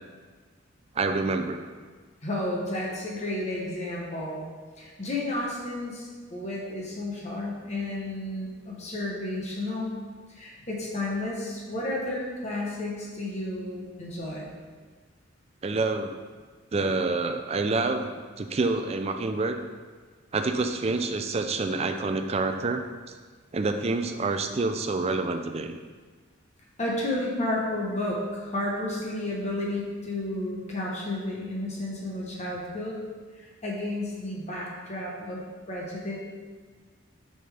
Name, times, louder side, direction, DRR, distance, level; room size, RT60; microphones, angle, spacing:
voice 1, 1.0-1.6 15.6-16.2 16.7-19.6 20.3-22.8 23.5-25.8, right 3 dB, 30° right, 7 dB, 0.4 m, -27 dB
voice 2, 2.2-4.4 4.8-9.9 10.3-14.5 26.8-33.0 33.4-36.2, left 1 dB, 30° left, -3 dB, 0.9 m, -32 dB
6.5 x 5.5 x 3.4 m, 1.5 s
head